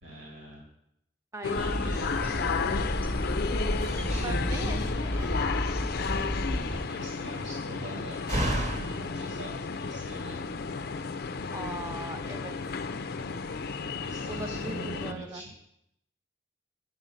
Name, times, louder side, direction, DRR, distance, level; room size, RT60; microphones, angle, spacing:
voice 1, 0.0-0.6 1.5-3.2 4.0-4.8 6.5-10.5 14.0-15.5, equal, 70° right, -2 dB, 2.4 m, -43 dB
voice 2, 1.3-1.7 4.0-5.3 5.8-5.9 11.5-12.6 14.3-15.4, right 2 dB, 15° right, 6 dB, 0.7 m, -40 dB
sound 1, 1.4-15.1, left 4 dB, 55° left, 0.5 m, -33 dB
sound 2, 1.6-6.8, equal, 10° left, 0.9 m, -32 dB
Slam, 2.9-10.5, right 1 dB, 40° right, 1.4 m, -38 dB
9.0 x 5.3 x 7.4 m, 0.78 s
head